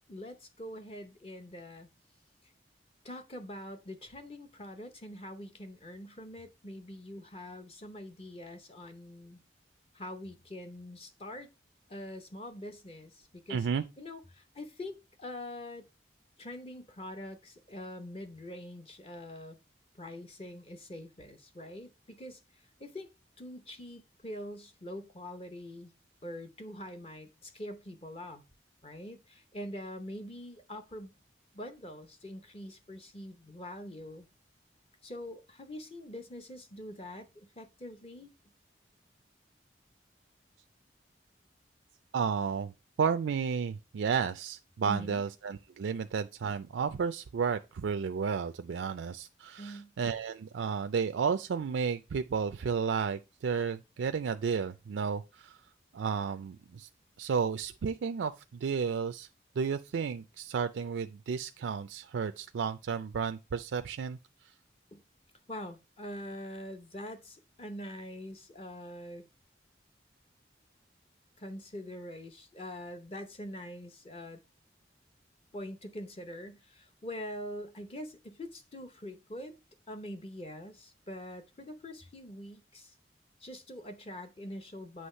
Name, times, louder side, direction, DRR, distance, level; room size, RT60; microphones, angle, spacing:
voice 1, 0.1-1.9 3.0-9.4 9.9-11.5 11.9-13.7 14.0-15.9 16.4-19.6 20.0-23.1 23.4-25.9 26.2-28.4 28.8-31.1 31.5-34.3 35.0-38.3 44.8-45.2 49.6-49.9 64.9-65.0 65.5-69.2 71.4-74.4 75.5-79.6 79.9-82.9 83.4-85.1, left 1 dB, 30° left, 0.7 m, -44 dB
voice 2, 13.5-13.8 42.1-42.7 43.0-55.6 55.9-56.9 57.2-59.3 59.6-64.2, right 6 dB, 85° right, 0.4 m, -32 dB
7.9 x 3.1 x 5.4 m
head